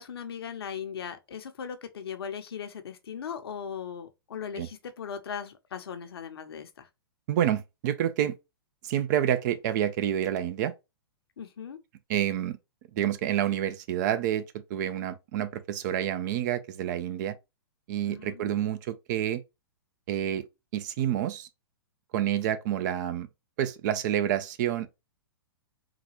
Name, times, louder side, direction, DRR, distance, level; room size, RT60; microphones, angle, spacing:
voice 1, 0.0-6.9 11.4-11.8 18.0-18.6, left 7 dB, 75° left, 0.8 m, -38 dB
voice 2, 7.3-8.3 8.8-10.7 12.1-12.6 12.9-14.4 14.7-17.3 17.9-19.4 20.1-20.4 20.7-21.5 22.1-23.3 23.6-24.9, right 11 dB, 50° right, 0.6 m, -28 dB
3.8 x 2.3 x 3.0 m
hypercardioid pair, 120°, 13 cm